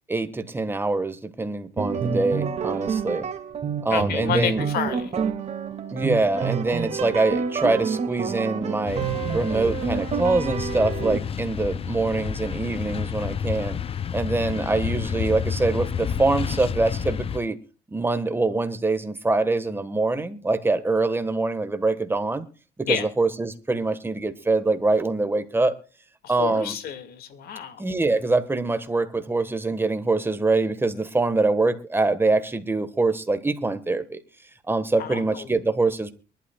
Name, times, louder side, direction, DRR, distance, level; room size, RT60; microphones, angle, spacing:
voice 1, 0.1-3.3 3.8-4.7 5.9-9.0 9.3-13.8 14.1-17.6 17.9-22.5 22.8-25.7 26.3-26.8 27.8-34.2 34.7-36.1, right 3 dB, 15° right, 1.4 m, -24 dB
sound 1, 1.8-11.2, right 6 dB, 40° right, 2.3 m, -28 dB
voice 2, 3.9-5.2 22.9-23.1 26.2-27.8 35.0-35.5, left 8 dB, 65° left, 2.2 m, -29 dB
sound 2, 8.9-17.4, left 7 dB, 35° left, 0.6 m, -30 dB
23.5 x 12.0 x 2.4 m
cardioid pair, 110°, 17 cm